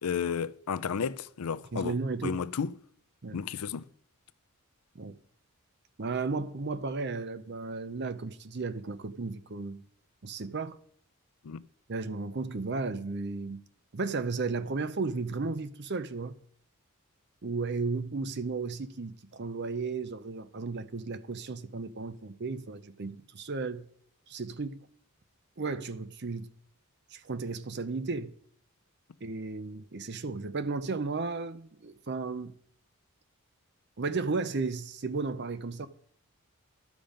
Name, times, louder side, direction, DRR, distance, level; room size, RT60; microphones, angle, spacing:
voice 1, 0.0-2.0 2.2-2.7 3.3-3.9 11.4-11.6, left 6 dB, 90° left, 0.5 m, -32 dB
voice 2, 1.7-2.4 3.2-3.4 4.9-5.2 6.0-9.8 10.2-10.8 11.9-13.6 13.9-16.4 17.4-23.9 24.3-24.8 25.6-26.5 27.1-28.3 29.2-32.5 34.0-35.9, right 4 dB, 50° right, 0.7 m, -34 dB
11.5 x 7.3 x 5.1 m
head